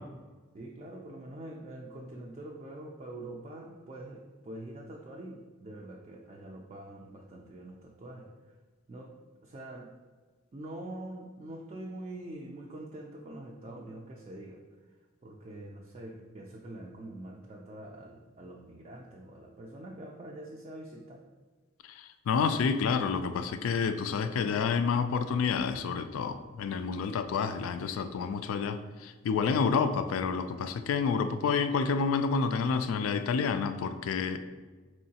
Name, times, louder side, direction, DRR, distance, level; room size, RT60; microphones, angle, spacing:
voice 1, 0.5-8.5 8.9-10.0 10.5-14.6 15.2-21.2, right 1 dB, 30° right, -1 dB, 0.3 m, -45 dB
voice 2, 21.8-34.4, left 5 dB, 90° left, 10 dB, 0.3 m, -29 dB
4.4 x 3.1 x 2.8 m, 1.3 s
head